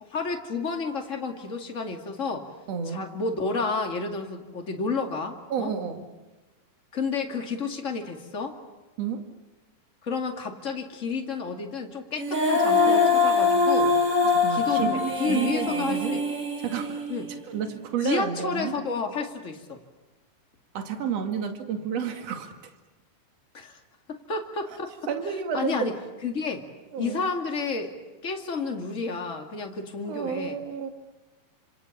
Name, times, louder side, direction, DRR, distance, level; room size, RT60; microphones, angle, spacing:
voice 1, 0.1-2.5 2.8-5.7 6.9-8.6 10.0-13.9 14.5-16.2 17.1-17.3 18.0-19.8 23.5-23.8 24.1-24.9 25.5-25.9 26.2-26.6 27.0-27.9 28.2-30.6, left 4 dB, 30° left, 3 dB, 1.5 m, -31 dB
voice 2, 2.7-3.0 5.5-6.0 9.0-9.2 14.2-14.9 15.2-16.2 16.6-17.0 17.5-18.7 20.7-22.5 24.7-24.8 25.1-25.9 26.9-27.2 30.0-30.9, right 7 dB, 45° right, 5 dB, 2.7 m, -31 dB
Female singing, 12.2-17.4, left 4 dB, 20° right, 3.9 m, -23 dB
29.5 x 27.0 x 7.3 m, 1.1 s
omnidirectional pair, 5.1 m